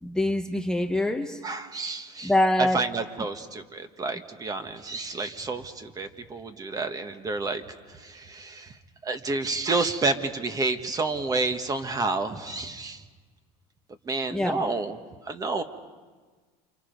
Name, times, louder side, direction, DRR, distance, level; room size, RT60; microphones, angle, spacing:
voice 1, 0.0-1.4 2.2-2.8 14.3-14.7, left 1 dB, 5° left, 4 dB, 0.9 m, -24 dB
voice 2, 1.4-2.3 2.6-7.6 7.9-8.8 9.0-13.0 14.0-15.0 15.3-15.6, right 3 dB, 25° right, 8 dB, 1.4 m, -29 dB
28.0 x 27.0 x 5.3 m, 1.4 s
supercardioid pair, 125°, 16 cm